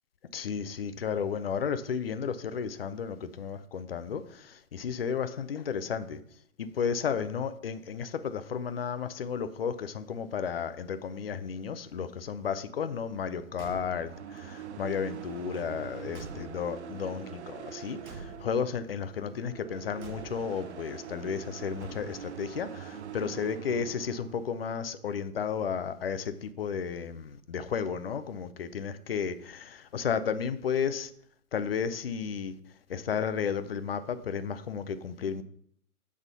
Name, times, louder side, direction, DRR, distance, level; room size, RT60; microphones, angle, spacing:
voice 1, 0.3-6.2 6.6-31.1 31.5-32.5 32.9-35.4, left 7 dB, 45° left, 0.5 m, -33 dB
sound 1, 13.4-24.4, right 8 dB, 50° right, 0.6 m, -44 dB
Car / Truck / Slam, 13.5-14.2 15.5-16.9 18.0-18.8 20.0-20.7 21.8-22.4, right 3 dB, 75° right, 1.3 m, -47 dB
8.2 x 3.6 x 5.5 m
hypercardioid pair, 155°, 44 cm